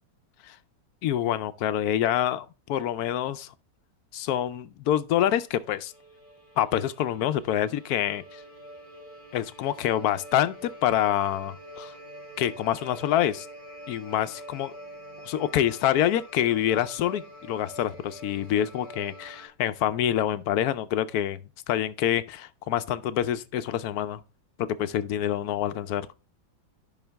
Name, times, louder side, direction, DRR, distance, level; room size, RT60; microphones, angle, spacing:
voice 1, 1.0-3.5 4.1-5.9 6.6-8.4 9.3-11.9 12.4-13.5 13.9-14.7 15.3-21.4 21.7-24.2 24.6-26.1, left 11 dB, 70° left, 0.9 m, -26 dB
sound 1, 5.1-19.5, equal, 75° right, 3.6 m, -46 dB
11.0 x 5.7 x 3.4 m
omnidirectional pair, 2.0 m